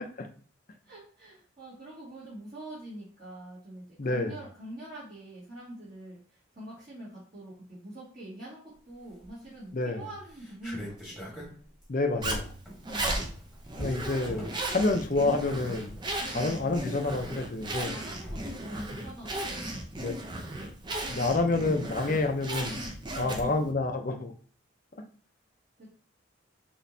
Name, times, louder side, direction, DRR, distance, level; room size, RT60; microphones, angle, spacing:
voice 1, 0.8-8.6 8.9-11.2 12.8-13.2 16.3-17.0 17.7-19.9 23.1-23.5 25.8-25.9, right 1 dB, 40° right, -11 dB, 1.9 m, -44 dB
voice 2, 4.0-4.4 9.7-10.0 11.9-12.6 13.8-16.0 16.3-17.9 20.0-20.1 21.1-22.8 23.2-24.3 25.0-25.1, left 2 dB, 45° left, 5 dB, 0.6 m, -28 dB
sound 1, 9.1-9.6 9.9-10.0 10.2-18.9, equal, 5° right, 1.3 m, -44 dB
Zipper (clothing), 12.2-23.7, right 1 dB, 20° right, 0.6 m, -36 dB
6.1 x 3.1 x 2.7 m, 0.43 s
head